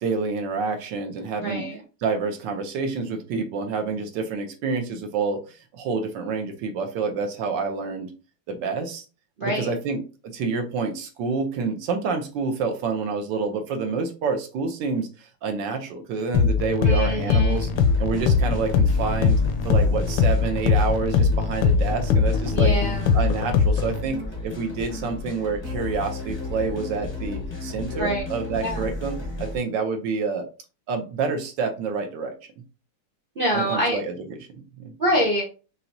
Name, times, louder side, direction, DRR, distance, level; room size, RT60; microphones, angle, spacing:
voice 1, 0.0-1.7 2.0-5.4 5.7-8.1 8.5-9.0 9.4-15.1 15.4-17.7 18.0-19.4 19.6-22.7 23.1-30.4 30.9-32.3 33.5-34.9, right 4 dB, 70° right, 5 dB, 1.3 m, -28 dB
voice 2, 1.4-1.8 9.4-9.7 16.8-17.7 22.5-23.2 28.0-28.2 28.6-28.9 33.4-34.0 35.0-35.4, equal, 85° right, -3 dB, 0.4 m, -25 dB
sound 1, 16.3-24.0, left 5 dB, 75° left, 1.1 m, -21 dB
sound 2, 17.5-29.6, left 1 dB, 35° left, 0.4 m, -33 dB
5.8 x 2.7 x 2.6 m, 0.34 s
omnidirectional pair, 2.3 m